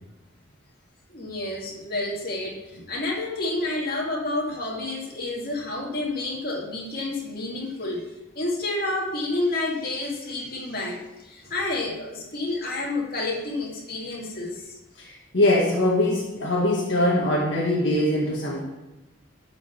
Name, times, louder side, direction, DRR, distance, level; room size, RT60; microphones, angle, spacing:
voice 1, 1.1-8.1 8.3-14.8, left 2 dB, 50° left, -3 dB, 2.3 m, -29 dB
voice 2, 15.0-18.6, left 1 dB, 70° left, -3 dB, 1.8 m, -22 dB
11.5 x 5.3 x 6.0 m, 0.98 s
head